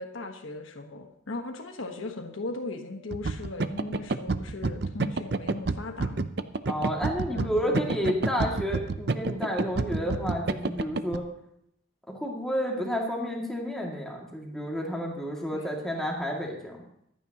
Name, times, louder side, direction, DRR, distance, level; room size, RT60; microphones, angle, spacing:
voice 1, 0.0-6.3 7.3-8.0 8.4-8.6 15.5-15.7, left 2 dB, 90° left, 4 dB, 1.3 m, -38 dB
sound 1, 3.1-11.2, right 3 dB, 55° right, 0.6 m, -29 dB
voice 2, 6.7-11.2 12.1-16.8, equal, 5° left, -2 dB, 2.2 m, -30 dB
25.5 x 9.2 x 2.9 m, 0.74 s
head